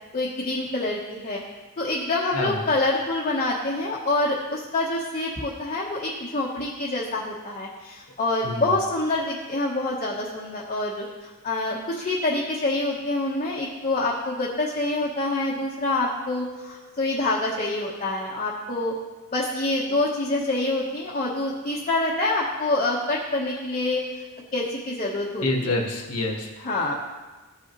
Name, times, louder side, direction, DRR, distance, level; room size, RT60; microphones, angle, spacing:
voice 1, 0.1-1.4 1.8-18.9 19.3-24.0 24.5-25.7 26.6-26.9, left 2 dB, 35° left, -5 dB, 1.0 m, -26 dB
voice 2, 8.4-8.7 25.4-26.5, left 2 dB, 70° left, 1 dB, 1.3 m, -27 dB
14.5 x 5.4 x 3.0 m, 1.2 s
head